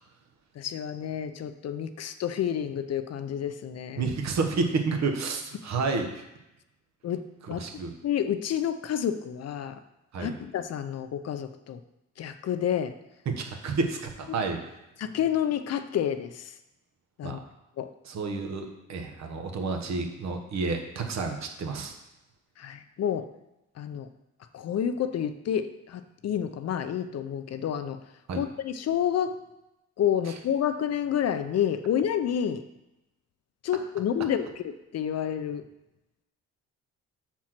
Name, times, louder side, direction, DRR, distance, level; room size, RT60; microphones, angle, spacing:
voice 1, 0.6-4.1 7.0-7.2 7.5-7.6 8.0-9.8 10.2-11.8 12.2-12.9 15.0-16.5 17.2-17.4 17.8-17.9 22.6-23.3 23.8-24.1 24.5-28.0 28.4-29.4 30.0-32.6 33.6-35.6, left 9 dB, 55° left, 9 dB, 0.6 m, -29 dB
voice 2, 4.0-6.2 7.6-7.9 10.1-10.3 13.3-14.6 17.2-17.4 18.0-22.0 28.3-28.4, right 4 dB, 65° right, 4 dB, 1.3 m, -30 dB
6.2 x 4.5 x 5.9 m, 0.92 s
cardioid pair, 90°, 30 cm